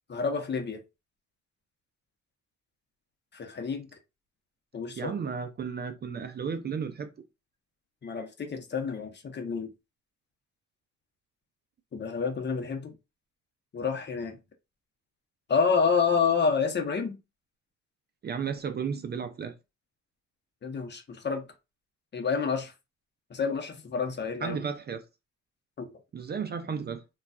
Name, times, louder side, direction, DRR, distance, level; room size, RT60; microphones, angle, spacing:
voice 1, 0.1-0.8 3.3-3.9 4.7-5.1 8.0-9.7 11.9-12.9 13.7-14.4 15.5-17.2 20.6-21.5 22.1-22.7 23.3-24.6 25.8-25.9, left 5 dB, 35° left, 0.8 m, -28 dB
voice 2, 5.0-7.1 18.2-19.5 24.4-25.0 26.1-27.0, right 6 dB, 35° right, 0.4 m, -33 dB
3.8 x 2.3 x 2.3 m
cardioid pair, 90°, 30 cm